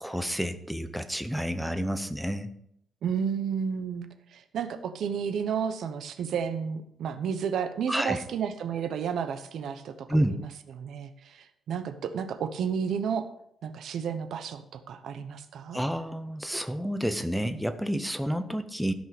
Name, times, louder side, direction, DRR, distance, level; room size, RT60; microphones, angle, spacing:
voice 1, 0.0-2.5 7.9-8.2 10.1-10.4 15.7-18.9, equal, ahead, 9 dB, 0.7 m, -29 dB
voice 2, 3.0-10.1 10.4-10.5 10.7-13.3 13.6-15.8, right 7 dB, 70° right, 9 dB, 0.9 m, -32 dB
13.5 x 5.4 x 5.2 m, 0.71 s
cardioid pair, 140°, 0 cm